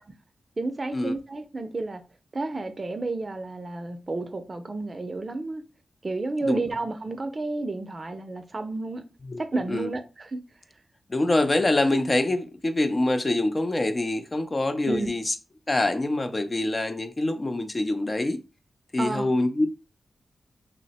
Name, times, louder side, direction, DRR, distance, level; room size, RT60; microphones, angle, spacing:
voice 1, 0.6-2.0 2.3-5.6 6.0-9.0 9.4-10.4 14.8-15.1 19.0-19.3, right 2 dB, 35° right, 0.4 m, -31 dB
voice 2, 9.2-9.9 11.1-15.4 15.7-18.4 18.9-19.7, left 2 dB, 30° left, 0.3 m, -25 dB
2.9 x 2.0 x 4.0 m
wide cardioid pair, 95°, 0 cm